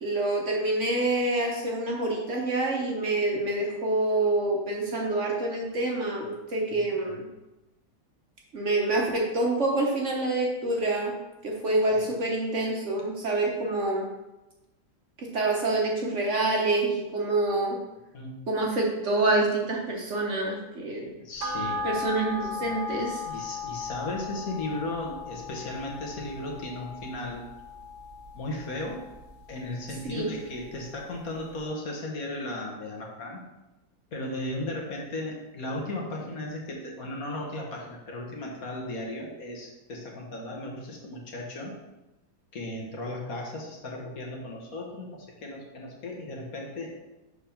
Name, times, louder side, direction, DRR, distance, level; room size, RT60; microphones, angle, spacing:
voice 1, 0.0-7.3 8.5-11.2 11.4-14.1 15.2-17.8 18.5-21.1 21.8-23.2 30.0-30.3, right 2 dB, 50° right, -1 dB, 1.2 m, -27 dB
voice 2, 21.2-21.8 22.5-22.8 23.2-27.4 28.3-29.0 29.5-33.4 34.1-41.7 42.5-46.9, left 1 dB, 60° left, -1 dB, 1.6 m, -36 dB
sound 1, 21.4-30.2 30.5-30.6, left 3 dB, 80° right, 1.8 m, -37 dB
6.7 x 3.5 x 5.7 m, 1.0 s
omnidirectional pair, 1.8 m